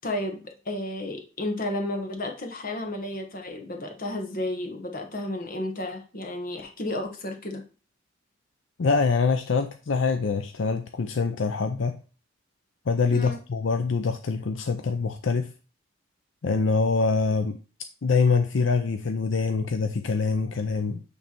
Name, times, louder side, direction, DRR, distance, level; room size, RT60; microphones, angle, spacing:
voice 1, 0.0-7.6 13.1-13.4, left 1 dB, 45° left, 3 dB, 1.3 m, -32 dB
voice 2, 8.8-12.0 12.9-15.5 16.4-17.6 18.0-21.0, left 4 dB, 70° left, 7 dB, 0.5 m, -24 dB
8.4 x 3.4 x 4.4 m, 0.36 s
head